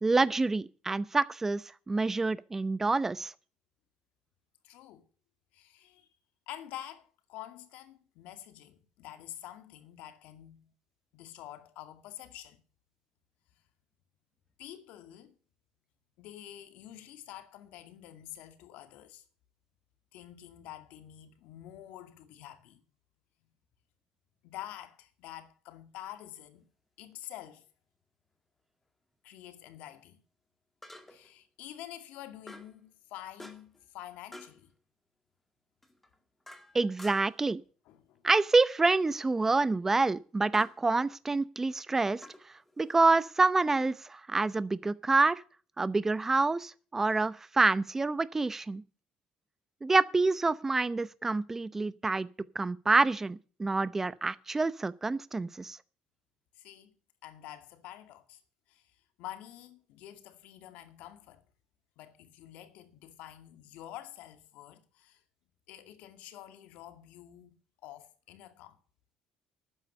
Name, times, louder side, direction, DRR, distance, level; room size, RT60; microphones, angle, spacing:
voice 1, 0.0-3.3 36.7-37.6 38.2-42.2 42.8-45.4 45.8-48.8 49.8-52.3 52.5-55.8, right 3 dB, 15° right, 0.7 m, -27 dB
voice 2, 4.6-5.1 5.5-6.1 6.5-10.7 11.1-12.6 14.6-15.3 16.2-19.2 20.1-22.8 24.4-26.7 27.0-27.6 29.2-30.2 31.1-34.7 37.9-38.2 56.5-56.9 57.2-58.4 58.7-61.4 62.0-65.2 65.7-68.8, left 12 dB, 80° left, 2.2 m, -48 dB
sound 1, 27.1-27.3 30.8-31.4 32.5-32.8 33.4-33.8 34.3-34.6 35.8-37.5 38.9-39.3 40.5-40.8 42.2-43.2, left 1 dB, 10° left, 1.9 m, -51 dB
12.5 x 9.5 x 6.6 m
cardioid pair, 140°, 2 cm